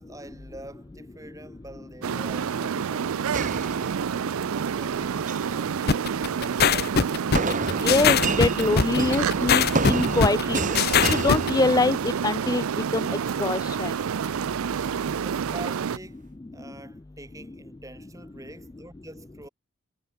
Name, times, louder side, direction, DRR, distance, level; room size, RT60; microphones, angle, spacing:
voice 1, 0.0-3.9 4.4-7.2 14.6-19.5, right 1 dB, 15° right, 4.8 m, -46 dB
sound 1, 2.0-16.0, right 7 dB, 70° right, 0.4 m, -28 dB
sound 2, 3.3-4.4 5.1-5.6 7.3-12.2, right 3 dB, 35° right, 1.8 m, -30 dB
sound 3, 5.9-11.5, left 6 dB, 45° left, 0.7 m, -21 dB
voice 2, 7.8-10.6 11.1-12.6 12.9-13.1 13.4-13.9, left 3 dB, 15° left, 0.3 m, -24 dB
head